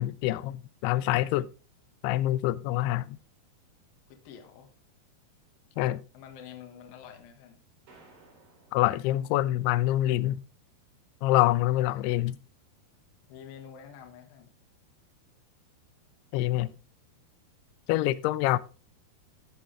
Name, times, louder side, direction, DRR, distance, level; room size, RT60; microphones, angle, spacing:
voice 1, 0.0-1.5 2.0-3.2 5.8-6.0 8.7-10.4 11.2-12.4 16.3-16.7 17.9-18.6, left 15 dB, 80° left, 2.5 m, -26 dB
voice 2, 4.1-4.7 6.1-7.6 13.3-14.5, left 8 dB, 65° left, 3.0 m, -47 dB
sound 1, 7.9-9.9, right 3 dB, 55° right, 4.3 m, -59 dB
15.5 x 6.1 x 3.3 m
omnidirectional pair, 4.8 m